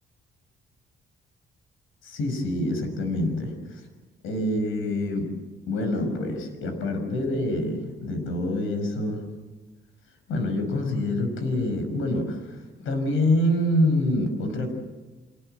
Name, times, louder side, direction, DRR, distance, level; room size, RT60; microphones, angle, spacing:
voice 1, 2.0-3.8 4.2-5.3 5.7-9.2 10.3-14.7, left 1 dB, 85° left, 6 dB, 5.5 m, -26 dB
26.5 x 19.0 x 7.8 m, 1.2 s
cardioid pair, 155°, 20 cm